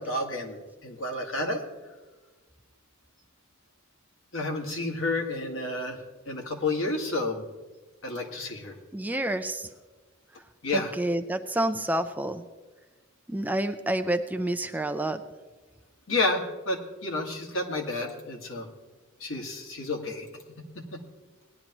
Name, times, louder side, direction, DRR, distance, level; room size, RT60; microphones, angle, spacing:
voice 1, 0.0-1.6 4.3-6.0 6.3-7.4 8.0-8.7 10.6-10.9 16.1-18.7 19.2-20.3 20.8-21.0, left 2 dB, 70° left, 1 dB, 1.9 m, -30 dB
voice 2, 8.9-9.7 10.7-12.4 13.3-15.2, right 1 dB, 10° right, 8 dB, 0.4 m, -29 dB
19.0 x 10.5 x 3.0 m, 1.2 s
head